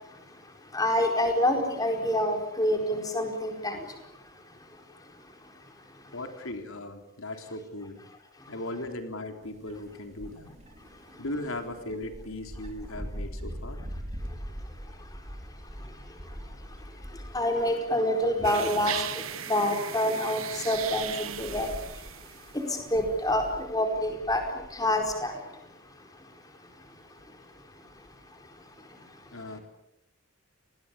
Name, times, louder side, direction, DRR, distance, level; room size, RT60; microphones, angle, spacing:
voice 1, 0.7-3.8 17.3-19.0 19.5-21.7 22.5-24.4 24.7-25.3, left 1 dB, 15° left, 4 dB, 4.6 m, -27 dB
voice 2, 6.1-8.0 8.5-10.5 11.2-13.8 29.3-29.6, left 1 dB, 85° left, 5 dB, 3.7 m, -38 dB
sound 1, 9.4-17.9 18.2-18.7 19.2-19.3 20.2-25.1, equal, 30° right, 3.9 m, -43 dB
sound 2, 18.4-22.8, right 10 dB, 85° right, 1.4 m, -37 dB
29.0 x 20.5 x 8.6 m, 0.85 s
head